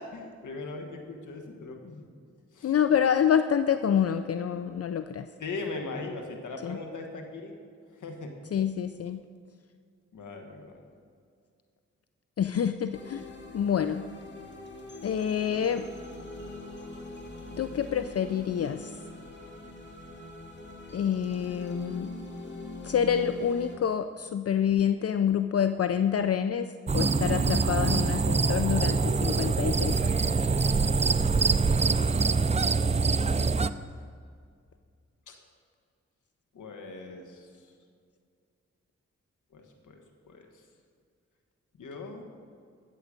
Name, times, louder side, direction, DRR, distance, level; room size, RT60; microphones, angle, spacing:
voice 1, 0.0-2.1 2.5-2.8 5.4-7.5 7.9-8.3 10.1-10.8 33.4-34.0 35.3-35.4 36.5-37.7 39.5-40.0 40.3-40.6 41.8-42.3, left 3 dB, 90° left, 3 dB, 1.5 m, -40 dB
voice 2, 2.6-5.3 6.6-6.8 8.5-9.2 12.4-13.2 13.5-14.1 15.0-15.9 17.6-18.9 20.9-22.1 22.8-26.7 26.9-30.2, left 8 dB, 55° left, 10 dB, 0.5 m, -27 dB
sound 1, 12.9-23.8, left 2 dB, 40° left, 2.1 m, -43 dB
sound 2, 26.9-33.7, right 4 dB, 20° right, 0.4 m, -24 dB
13.5 x 7.9 x 5.2 m, 2.2 s
cardioid pair, 50°, 30 cm